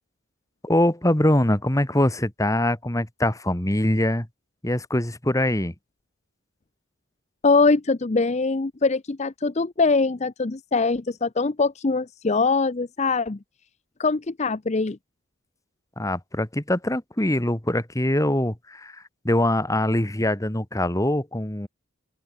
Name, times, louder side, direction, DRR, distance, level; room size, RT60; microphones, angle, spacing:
voice 1, 0.6-4.3 4.6-5.7 16.0-21.7, left 1 dB, 15° left, 1.8 m, -23 dB
voice 2, 7.4-13.4 14.0-15.0, left 3 dB, 35° left, 0.6 m, -22 dB
open air
head